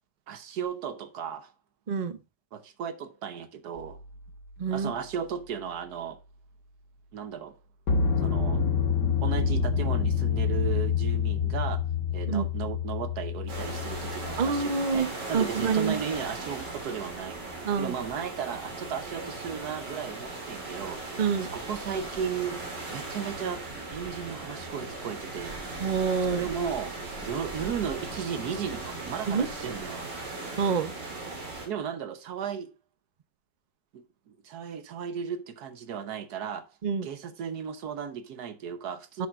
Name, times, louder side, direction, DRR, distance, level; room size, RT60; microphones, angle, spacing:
voice 1, 0.3-1.5 2.5-4.0 4.7-6.2 7.1-7.5 8.2-8.7 9.2-11.8 12.1-17.4 17.8-22.6 22.9-23.6 23.9-25.5 26.3-30.1 31.6-32.7 33.9-36.7 37.0-39.3, right 7 dB, 70° right, 1.3 m, -35 dB
voice 2, 1.9-2.2 4.6-4.9 12.3-12.4 14.4-15.9 17.6-17.9 21.2-21.5 25.8-26.4 29.3-29.5 30.6-30.9 36.8-37.1 39.2-39.3, right 5 dB, 55° right, 0.5 m, -27 dB
sound 1, 3.8-4.0 7.9-14.6, left 6 dB, 80° left, 2.1 m, -27 dB
sound 2, 13.5-31.7, right 2 dB, 90° right, 3.4 m, -38 dB
10.5 x 7.0 x 2.5 m
omnidirectional pair, 1.8 m